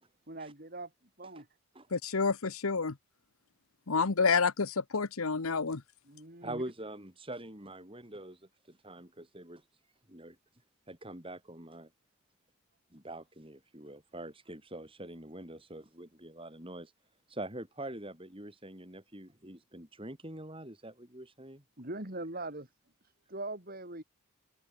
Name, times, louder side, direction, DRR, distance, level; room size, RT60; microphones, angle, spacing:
voice 1, 0.3-1.5 6.0-6.6 21.8-22.7 23.3-24.0, right 2 dB, 40° right, 4.2 m, -41 dB
voice 2, 1.9-2.9 3.9-5.8, left 5 dB, 75° left, 1.0 m, -29 dB
voice 3, 6.4-9.7 10.1-11.9 12.9-16.9 17.3-21.6, right 1 dB, 25° right, 4.7 m, -44 dB
head